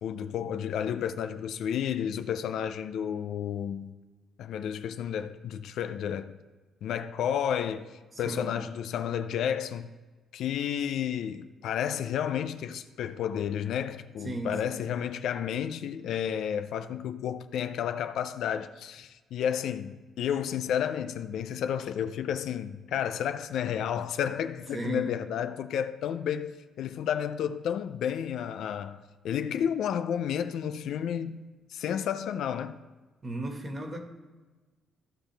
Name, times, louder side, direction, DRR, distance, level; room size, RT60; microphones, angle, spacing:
voice 1, 0.0-3.9 4.4-6.4 6.8-7.9 8.2-9.9 10.3-31.4 31.7-32.8, left 9 dB, 75° left, 0.5 m, -31 dB
voice 2, 8.1-8.6 14.2-14.9 24.7-25.1 33.2-34.0, right 2 dB, 35° right, 1.7 m, -36 dB
14.5 x 5.6 x 3.4 m
cardioid pair, 90°, 0 cm